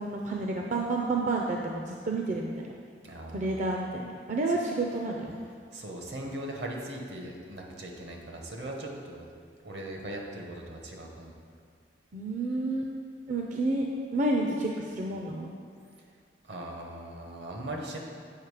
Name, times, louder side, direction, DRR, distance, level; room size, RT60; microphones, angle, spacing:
voice 1, 0.0-2.7 3.3-5.4 12.1-12.9 13.3-15.5, right 2 dB, 45° right, 0 dB, 0.5 m, -30 dB
voice 2, 3.0-3.6 5.7-9.3 9.6-11.3 16.4-18.0, right 1 dB, 70° right, 0 dB, 1.1 m, -39 dB
7.3 x 5.1 x 4.8 m, 2.1 s
head